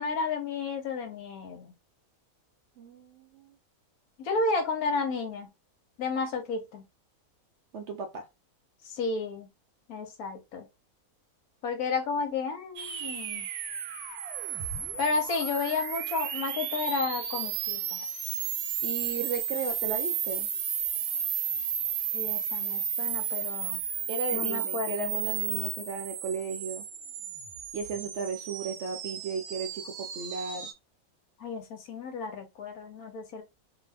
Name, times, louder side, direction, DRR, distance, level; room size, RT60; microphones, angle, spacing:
voice 1, 0.0-1.7 4.2-5.5 6.0-6.8 8.9-9.5 9.9-10.7 11.6-13.5 15.0-18.0 22.1-23.8 24.3-25.1 31.4-33.4, left 4 dB, 80° left, 1.2 m, -32 dB
voice 2, 2.8-3.5 7.7-8.3 18.8-20.5 24.1-26.9 27.7-30.7, right 4 dB, 65° right, 0.7 m, -35 dB
sound 1, 12.8-30.7, right 8 dB, 90° right, 1.1 m, -33 dB
2.6 x 2.3 x 3.3 m
omnidirectional pair, 1.5 m